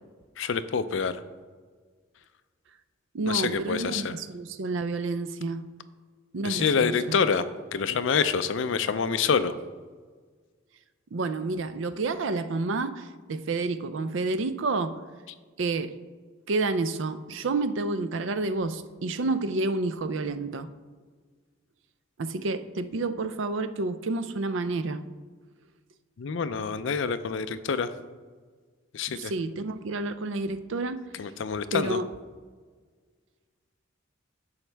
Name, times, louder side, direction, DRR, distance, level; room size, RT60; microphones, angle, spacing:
voice 1, 0.4-1.2 3.3-4.2 6.4-7.5 7.7-9.5 26.2-27.9 28.9-29.3 31.2-32.0, left 6 dB, 65° left, 12 dB, 0.5 m, -26 dB
voice 2, 3.1-5.7 6.3-7.2 11.1-15.0 15.6-15.9 16.5-20.7 22.2-25.0 29.1-31.1 31.7-32.1, right 3 dB, 65° right, 11 dB, 0.5 m, -29 dB
10.5 x 7.1 x 3.3 m, 1.5 s
head